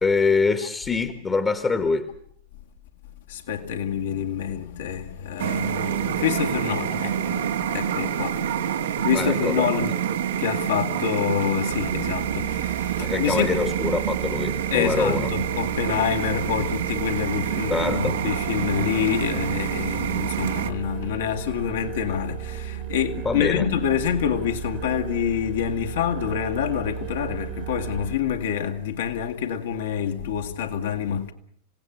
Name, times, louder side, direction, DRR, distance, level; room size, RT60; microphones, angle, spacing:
voice 1, 0.0-2.1 9.1-9.8 13.0-15.3 17.7-18.2 23.2-23.7, left 4 dB, 15° left, 1.6 m, -24 dB
voice 2, 3.3-10.0 10.3-13.6 14.7-31.3, left 8 dB, 60° left, 2.4 m, -27 dB
sound 1, 5.4-20.7, right 9 dB, 60° right, 1.5 m, -27 dB
sound 2, 11.7-28.1, right 13 dB, 45° right, 1.7 m, -35 dB
27.5 x 18.0 x 8.2 m
figure-of-eight pair, 90°, 0 cm